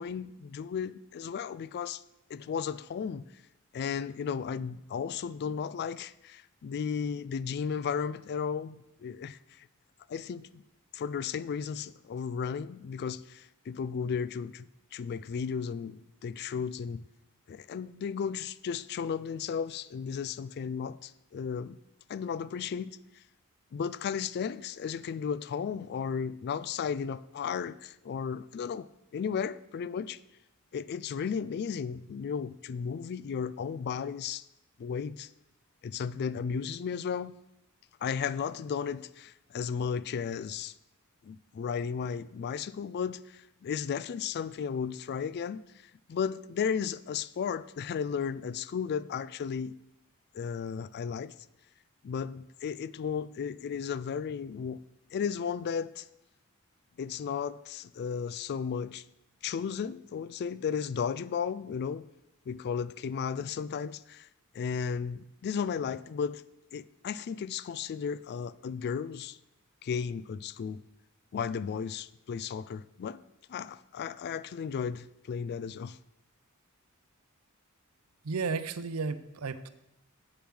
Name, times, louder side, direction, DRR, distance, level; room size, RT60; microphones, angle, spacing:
voice 1, 0.0-2.0 2.3-3.2 3.7-9.7 10.1-10.6 10.9-17.0 17.5-21.8 22.1-23.0 23.7-28.9 29.1-30.2 30.7-34.4 34.8-35.3 35.8-37.3 38.0-40.7 41.2-49.7 50.3-51.3 52.0-54.8 55.1-56.1 57.0-59.0 59.4-62.1 62.5-64.3 64.5-66.4 66.7-69.4 69.8-70.8 71.3-73.2 73.5-76.0, left 6 dB, 50° left, 0.3 m, -34 dB
voice 2, 78.2-79.7, right 4 dB, 80° right, 0.6 m, -33 dB
8.0 x 6.7 x 6.2 m
head